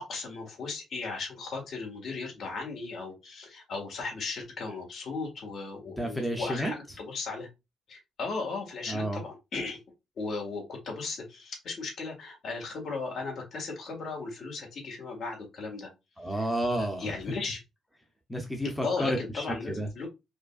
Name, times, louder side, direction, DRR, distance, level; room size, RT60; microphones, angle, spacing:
voice 1, 0.0-7.5 7.9-9.8 10.2-15.9 16.7-17.6 18.8-20.1, left 4 dB, 50° left, 0 dB, 1.6 m, -36 dB
voice 2, 5.9-7.0 8.9-9.2 16.2-17.4 18.3-19.9, equal, 5° left, 2 dB, 0.7 m, -31 dB
5.0 x 2.3 x 2.4 m, 0.23 s
cardioid pair, 135°, 0 cm